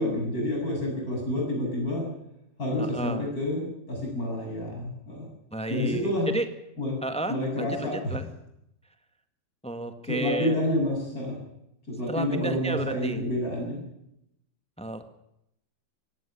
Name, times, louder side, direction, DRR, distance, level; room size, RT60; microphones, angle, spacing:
voice 1, 0.0-2.0 2.6-5.3 5.7-6.3 6.8-7.0 7.3-8.2 10.1-11.4 11.9-13.8, left 1 dB, 50° left, -1 dB, 8.2 m, -29 dB
voice 2, 2.8-3.3 5.5-6.5 7.0-8.3 9.6-10.6 12.1-13.2 14.8-15.1, right 2 dB, 5° left, 8 dB, 1.4 m, -32 dB
18.0 x 15.5 x 10.0 m, 0.81 s
omnidirectional pair, 2.0 m